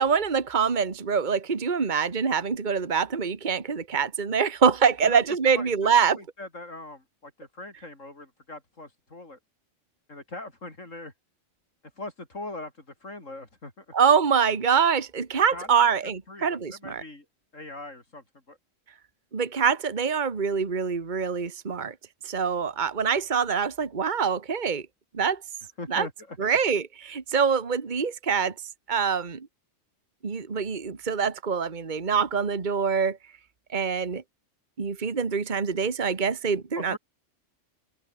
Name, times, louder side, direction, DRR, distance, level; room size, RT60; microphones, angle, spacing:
voice 1, 0.0-6.2 13.9-17.0 19.3-21.9 22.2-24.9 25.1-25.4 25.9-26.1 26.4-28.5 28.9-29.5 30.2-33.2 33.7-34.2 34.8-37.0, right 6 dB, 40° right, 1.6 m, -25 dB
voice 2, 5.5-9.4 10.1-11.1 12.0-13.9 15.5-17.3 17.5-18.6 25.8-26.6 36.7-37.0, left 2 dB, 80° left, 5.3 m, -41 dB
omnidirectional pair, 1.3 m